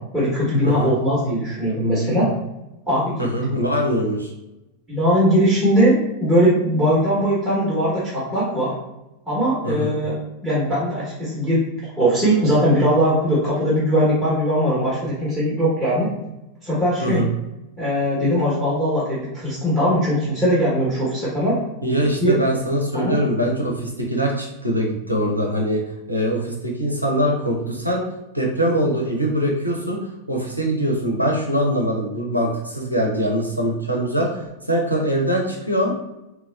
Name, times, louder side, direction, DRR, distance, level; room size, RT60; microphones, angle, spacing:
voice 1, 0.1-2.3 2.9-3.3 4.9-8.7 9.3-10.2 10.4-11.7 12.0-16.1 16.6-17.2 17.8-21.6 22.2-22.4 22.9-23.2, equal, ahead, -10 dB, 1.0 m, -20 dB
voice 2, 3.2-4.3 9.6-9.9 17.0-17.3 21.8-25.8 26.1-28.0 28.3-30.0 30.3-35.9, equal, 90° right, -1 dB, 0.4 m, -22 dB
2.9 x 2.2 x 2.3 m, 0.94 s
figure-of-eight pair, 90°, 0 cm